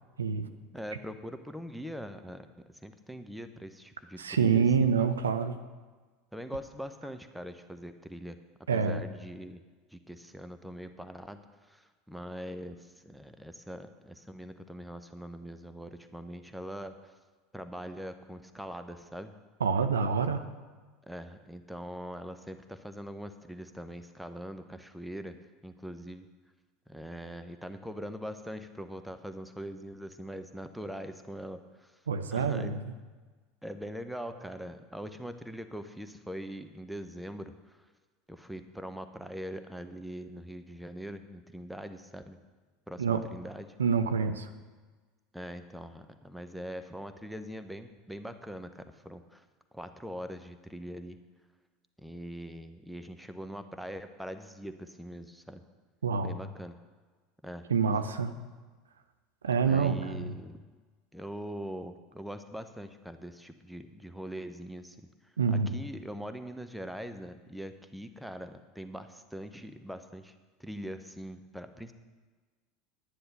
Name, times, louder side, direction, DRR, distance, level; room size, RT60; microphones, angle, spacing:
voice 1, 0.2-0.5 4.2-5.6 8.7-9.0 19.6-20.4 32.1-32.8 43.0-43.2 43.8-44.5 56.0-56.3 57.7-58.3 59.4-60.3 65.4-65.8, right 6 dB, 75° right, 9 dB, 0.6 m, -27 dB
voice 2, 0.7-4.9 6.3-8.4 8.7-9.6 9.9-17.1 17.5-19.3 21.0-25.4 25.6-26.3 26.9-32.0 32.3-32.8 33.6-37.8 38.3-42.4 42.9-43.7 45.3-49.4 49.7-51.2 52.0-55.6 56.2-56.8 57.4-57.6 59.6-60.6 61.1-65.0 65.2-70.3 70.6-71.9, equal, ahead, 9 dB, 0.8 m, -42 dB
11.0 x 10.0 x 5.2 m, 1.4 s
figure-of-eight pair, 75°, 0 cm